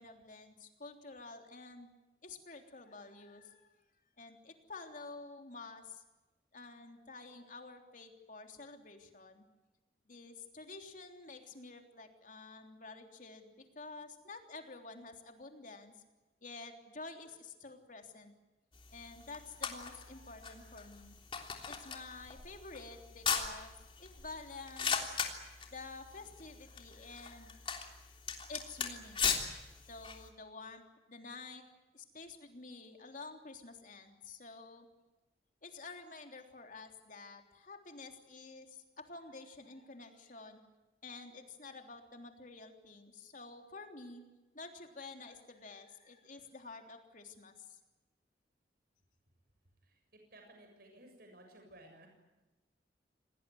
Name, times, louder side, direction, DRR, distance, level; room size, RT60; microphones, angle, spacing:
voice 1, 0.0-1.9 2.2-3.7 4.2-6.0 6.5-9.4 10.1-15.9 16.4-18.3 18.9-21.1 21.6-23.7 24.0-25.2 25.7-27.7 28.5-29.3 29.8-31.6 31.9-34.9 35.6-40.6 41.0-44.2 44.5-47.8, left 3 dB, 45° left, 4 dB, 3.4 m, -50 dB
sound 1, 18.7-30.3, left 6 dB, 30° left, 3.3 m, -40 dB
voice 2, 49.8-52.1, right 1 dB, 55° right, 3 dB, 7.1 m, -57 dB
27.5 x 19.0 x 9.3 m, 1.1 s
head